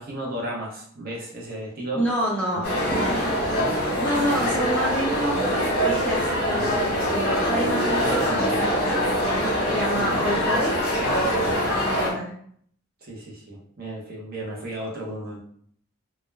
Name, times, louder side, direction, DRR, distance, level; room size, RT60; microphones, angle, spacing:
voice 1, 0.0-2.0 2.5-2.6 8.0-8.6 10.0-10.1 11.3-11.6 13.0-15.4, right 1 dB, 45° right, -2 dB, 0.6 m, -33 dB
voice 2, 1.9-5.4 5.8-9.1 9.6-10.8 11.3-11.4 11.7-12.3, equal, 5° left, -5 dB, 0.3 m, -28 dB
sound 1, 2.6-12.1, equal, 45° left, 0.9 m, -24 dB
2.2 x 2.1 x 3.1 m, 0.62 s
head